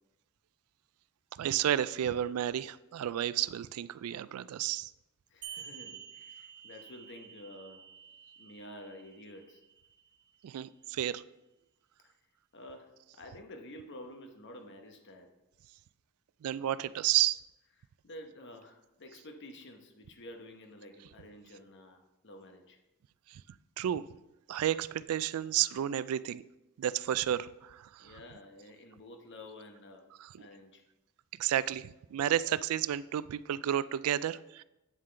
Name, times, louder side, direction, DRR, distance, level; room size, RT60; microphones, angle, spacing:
voice 1, 1.4-4.9 10.4-11.2 16.4-17.4 23.3-23.4 23.8-24.0 24.5-26.4 26.8-28.1 30.2-30.3 31.4-34.6, right 11 dB, 75° right, 17 dB, 0.3 m, -31 dB
voice 2, 5.3-7.8 8.4-9.6 12.0-12.2 12.5-15.3 18.0-22.8 28.0-30.0 30.4-30.8, left 1 dB, 55° left, 4 dB, 1.0 m, -50 dB
sound 1, 5.4-10.4, right 8 dB, 55° right, 1.0 m, -50 dB
8.9 x 7.4 x 3.3 m, 0.96 s
head